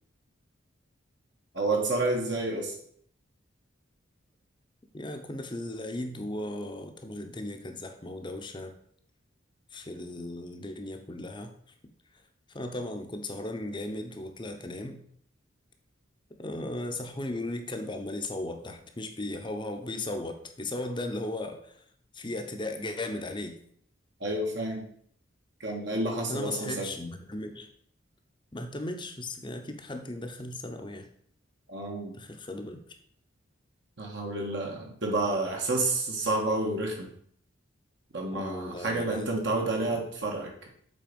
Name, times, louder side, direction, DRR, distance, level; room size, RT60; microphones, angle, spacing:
voice 1, 1.5-2.7 24.2-24.8 25.6-26.9 31.7-32.2 34.0-37.1 38.1-40.7, right 2 dB, 60° right, 0 dB, 1.5 m, -30 dB
voice 2, 4.9-8.8 9.7-11.5 12.5-15.0 16.4-21.8 22.1-23.6 26.3-27.7 28.5-31.1 32.1-32.8 38.3-39.5, left 1 dB, 25° left, 6 dB, 0.8 m, -36 dB
7.7 x 4.1 x 5.2 m, 0.62 s
head